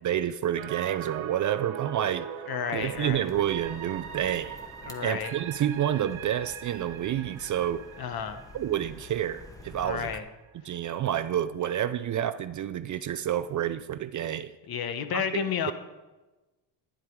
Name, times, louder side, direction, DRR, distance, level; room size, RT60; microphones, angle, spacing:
voice 1, 0.0-2.3 2.7-4.6 5.0-7.9 8.5-10.1 10.6-14.5 15.1-15.2, right 10 dB, 40° right, 0.4 m, -29 dB
sound 1, 0.6-10.6 10.9-11.0, right 9 dB, 80° right, 1.4 m, -41 dB
voice 2, 2.5-3.3 4.8-5.3 8.0-8.4 9.8-10.2 14.7-15.7, left 7 dB, 50° left, 1.3 m, -31 dB
sound 2, 2.8-10.2, left 2 dB, 5° left, 1.3 m, -49 dB
11.5 x 10.5 x 4.7 m
cardioid pair, 115°, 47 cm